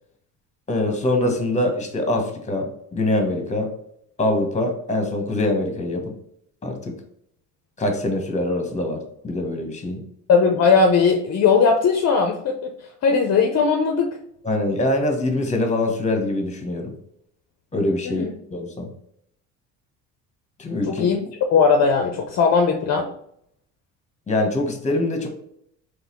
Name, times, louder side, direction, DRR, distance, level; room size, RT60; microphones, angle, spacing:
voice 1, 0.7-3.7 4.2-6.2 6.6-7.0 7.8-10.0 14.4-16.9 17.7-18.2 18.5-18.9 20.6-21.1 24.3-25.3, left 1 dB, 20° left, 4 dB, 1.1 m, -24 dB
voice 2, 10.3-12.7 13.0-14.2 18.0-18.3 20.8-21.2 21.5-23.1, left 5 dB, 45° left, 3 dB, 0.7 m, -18 dB
3.9 x 3.2 x 3.1 m, 0.69 s
supercardioid pair, 90°, 36 cm